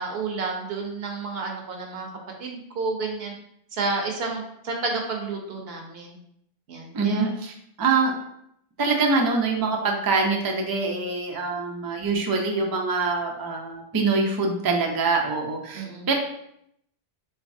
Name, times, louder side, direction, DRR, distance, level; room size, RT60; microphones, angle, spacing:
voice 1, 0.0-2.1 2.4-3.3 3.7-6.2 6.7-7.3 15.7-16.1, right 3 dB, 75° right, 1 dB, 1.0 m, -30 dB
voice 2, 6.9-7.5 7.8-8.1 8.8-16.1, right 4 dB, 30° right, 1 dB, 0.4 m, -24 dB
4.0 x 3.4 x 2.6 m, 0.74 s
omnidirectional pair, 1.0 m